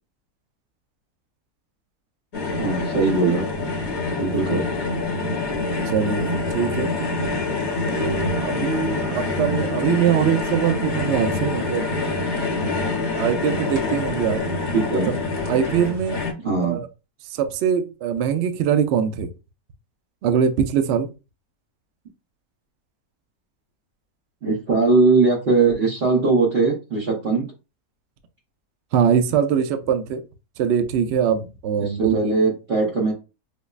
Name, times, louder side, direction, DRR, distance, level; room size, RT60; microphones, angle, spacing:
sound 1, 2.3-16.3, left 2 dB, 40° left, 0.7 m, -26 dB
voice 1, 2.6-3.5 4.2-4.7 14.7-15.1 16.4-16.8 24.4-27.5 31.8-33.1, right 3 dB, 50° right, 0.9 m, -20 dB
voice 2, 5.9-6.9 7.9-11.9 13.2-14.4 15.5-16.2 16.6-16.9 17.3-19.3 20.2-21.1 28.9-30.2 30.6-32.3, right 8 dB, 70° right, 0.6 m, -22 dB
5.2 x 2.0 x 2.4 m
omnidirectional pair, 1.6 m